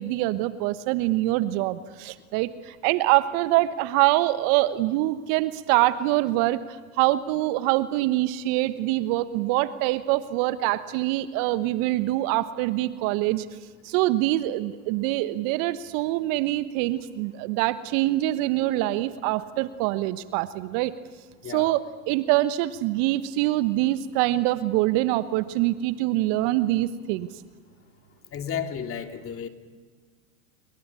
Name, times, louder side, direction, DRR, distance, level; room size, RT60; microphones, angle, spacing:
voice 1, 0.0-6.6 7.0-13.5 13.8-20.9 21.5-27.3, right 16 dB, 50° right, 13 dB, 1.3 m, -24 dB
voice 2, 28.3-29.5, left 8 dB, 30° left, 6 dB, 2.6 m, -32 dB
27.0 x 23.0 x 8.6 m, 1.4 s
hypercardioid pair, 90°, 42 cm